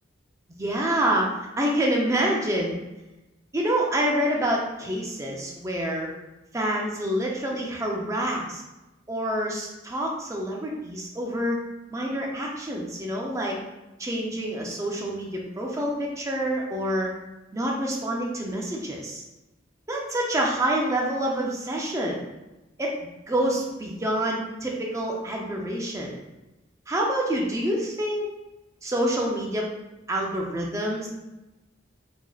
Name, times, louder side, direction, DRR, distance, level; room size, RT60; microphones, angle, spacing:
voice 1, 0.6-2.8 3.5-6.1 6.5-8.6 9.1-11.6 11.9-13.6 14.0-17.1 17.5-19.2 19.9-22.2 22.8-22.9 23.3-26.1 26.9-28.3 28.8-29.7 30.1-31.1, right 1 dB, 15° right, -1 dB, 0.4 m, -27 dB
4.7 x 2.8 x 2.3 m, 1.0 s
head